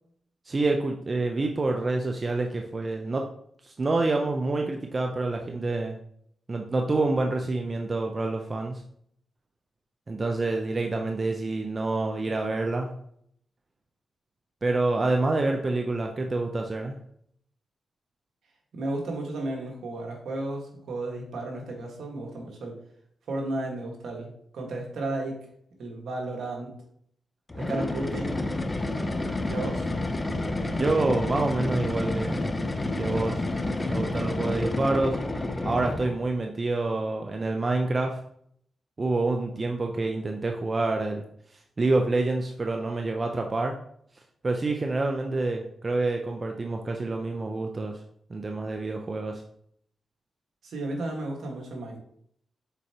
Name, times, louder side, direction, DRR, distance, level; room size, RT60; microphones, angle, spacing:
voice 1, 0.5-3.2 3.7-6.0 6.5-8.8 10.1-12.9 14.6-17.0 30.7-32.5 33.0-33.4 33.8-35.2 35.6-38.2 39.0-41.3 41.8-43.8 44.4-48.0 48.3-49.4, right 2 dB, 40° right, 3 dB, 0.7 m, -27 dB
voice 2, 18.7-22.8 23.3-25.4 25.8-26.7 27.5-28.4 29.5-29.9 50.6-52.0, right 2 dB, 75° right, 0 dB, 1.7 m, -33 dB
sound 1, 27.5-36.3, left 2 dB, 25° left, 0.7 m, -29 dB
6.9 x 4.6 x 3.0 m, 0.67 s
cardioid pair, 60°, 0 cm